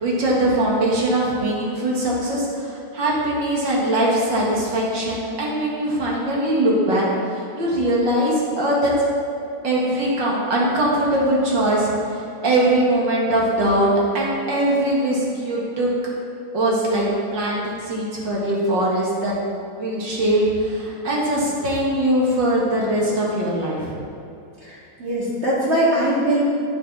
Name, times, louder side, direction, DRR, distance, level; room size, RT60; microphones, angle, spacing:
voice 1, 0.0-9.0 9.6-15.9 16.5-17.1 17.3-19.4 19.8-24.0, right 1 dB, 65° right, -4 dB, 2.5 m, -21 dB
voice 2, 24.6-26.4, right 1 dB, 35° right, -8 dB, 2.7 m, -21 dB
9.0 x 8.6 x 4.1 m, 2.6 s
omnidirectional pair, 2.2 m